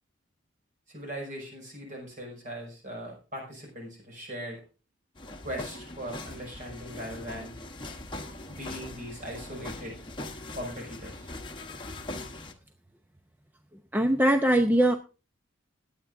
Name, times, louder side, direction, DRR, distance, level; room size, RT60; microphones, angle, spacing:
voice 1, 0.9-4.6 5.4-7.5 8.5-10.0 10.5-11.3, equal, 40° right, 1 dB, 6.0 m, -39 dB
sound 1, 5.2-12.5, left 2 dB, 25° left, 1.1 m, -41 dB
voice 2, 13.9-15.0, right 1 dB, 10° right, 5 dB, 0.6 m, -21 dB
21.5 x 8.9 x 2.6 m, 0.33 s
head